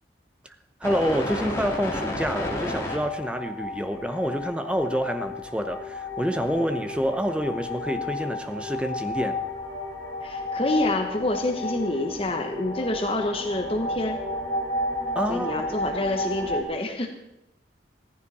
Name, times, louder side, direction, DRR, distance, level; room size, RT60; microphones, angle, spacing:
sound 1, 0.8-16.6, left 2 dB, 15° left, 2.8 m, -32 dB
voice 1, 0.8-9.4 15.1-15.5, equal, 5° right, 0.8 m, -27 dB
voice 2, 10.2-14.2 15.3-17.1, left 1 dB, 30° left, 1.2 m, -27 dB
16.0 x 14.5 x 4.2 m
head